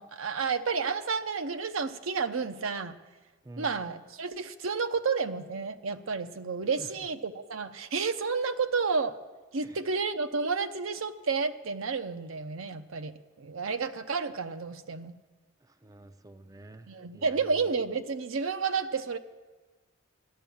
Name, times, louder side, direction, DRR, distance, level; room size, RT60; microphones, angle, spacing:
voice 1, 0.0-3.0 3.6-9.2 9.5-15.1 16.9-19.2, right 5 dB, 80° right, 8 dB, 0.8 m, -31 dB
voice 2, 15.6-17.7, right 2 dB, 15° right, 8 dB, 0.4 m, -49 dB
14.5 x 11.0 x 7.1 m, 1.3 s
head